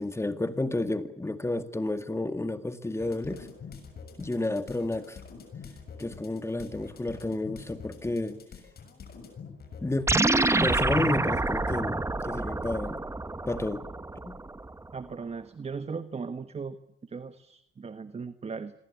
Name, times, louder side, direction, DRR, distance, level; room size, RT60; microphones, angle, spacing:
voice 1, 0.0-3.5 4.2-5.2 6.0-8.4 9.8-10.1 10.6-13.0 13.5-13.8 14.3-14.4, left 2 dB, 15° left, 10 dB, 2.1 m, -31 dB
sound 1, 3.0-10.4, left 5 dB, 55° left, 7.0 m, -46 dB
sound 2, 10.1-14.7, right 2 dB, 15° right, 1.2 m, -27 dB
voice 2, 14.9-16.8 17.0-18.7, right 5 dB, 30° right, 12 dB, 1.3 m, -37 dB
26.5 x 22.5 x 8.6 m, 0.80 s
cardioid pair, 90°, 20 cm